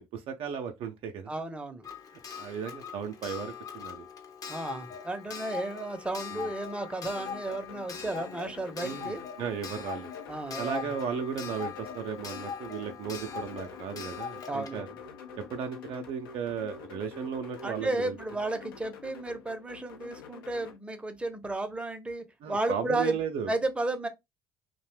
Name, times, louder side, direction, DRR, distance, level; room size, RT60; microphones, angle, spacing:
voice 1, 0.0-1.3 2.4-4.1 6.3-6.5 8.8-10.1 10.6-14.9 15.5-18.2 22.4-23.5, right 7 dB, 50° right, 0.4 m, -35 dB
voice 2, 1.3-1.9 4.5-9.2 10.3-10.9 14.5-14.9 17.6-23.2 23.5-24.1, right 2 dB, 10° right, 0.6 m, -33 dB
Clock, 1.8-16.4 17.6-17.7 17.9-18.0, left 7 dB, 30° left, 0.6 m, -42 dB
sound 1, 7.0-20.8, left 6 dB, 75° left, 0.4 m, -47 dB
2.6 x 2.1 x 3.2 m
figure-of-eight pair, 50°, 12 cm